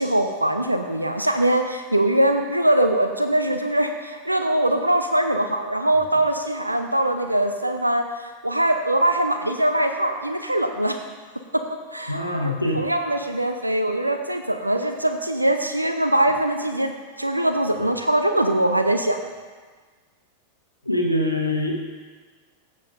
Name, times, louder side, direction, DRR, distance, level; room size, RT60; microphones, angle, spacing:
voice 1, 0.0-11.0 11.9-16.9 17.2-19.2, right 1 dB, 85° right, 6 dB, 0.5 m, -22 dB
voice 2, 12.1-12.8 20.8-21.8, left 1 dB, 90° left, -1 dB, 1.2 m, -23 dB
15.5 x 7.6 x 2.6 m, 1.5 s
figure-of-eight pair, 90°, 0 cm